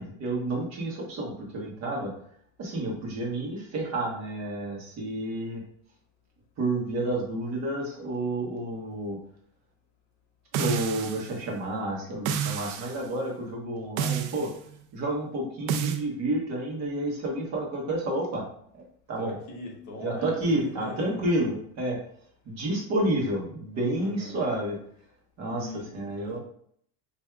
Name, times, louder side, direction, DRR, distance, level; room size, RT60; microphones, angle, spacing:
voice 1, 0.0-2.1 2.6-5.6 6.6-9.2 10.5-14.5 14.9-18.5 19.1-19.3 20.0-22.0 22.4-24.8 25.4-26.4, right 1 dB, 40° right, -2 dB, 1.1 m, -30 dB
sound 1, 10.5-11.3 12.2-13.0 14.0-14.5 15.7-16.0, right 8 dB, 75° right, 0.5 m, -29 dB
voice 2, 19.2-21.3 24.0-24.4 25.4-26.4, left 2 dB, 45° left, -1 dB, 1.1 m, -41 dB
4.6 x 2.6 x 2.3 m, 0.63 s
cardioid pair, 165°, 42 cm